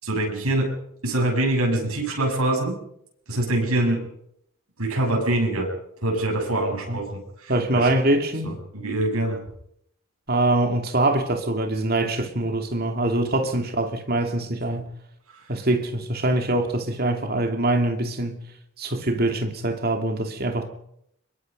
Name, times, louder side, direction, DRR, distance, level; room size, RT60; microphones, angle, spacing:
voice 1, 0.0-2.8 3.3-4.0 4.8-5.7 6.0-7.9 8.4-9.4 15.3-15.4, right 1 dB, 90° right, 7.2 m, -24 dB
voice 2, 7.5-8.5 10.3-14.8 15.5-18.4 18.8-20.7, right 2 dB, 45° right, 2.7 m, -23 dB
25.0 x 22.0 x 5.4 m
head